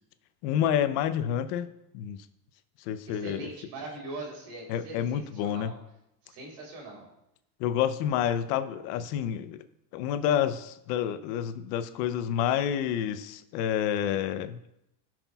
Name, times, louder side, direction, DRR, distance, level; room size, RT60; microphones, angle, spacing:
voice 1, 0.4-1.7 1.9-2.2 2.9-3.5 4.7-5.7 7.6-9.6 9.9-14.6, left 10 dB, 90° left, 11 dB, 0.8 m, -29 dB
voice 2, 3.1-5.8 6.2-7.1, right 2 dB, 75° right, -1 dB, 3.5 m, -41 dB
18.0 x 6.1 x 2.3 m, 0.84 s
cardioid pair, 120°, 46 cm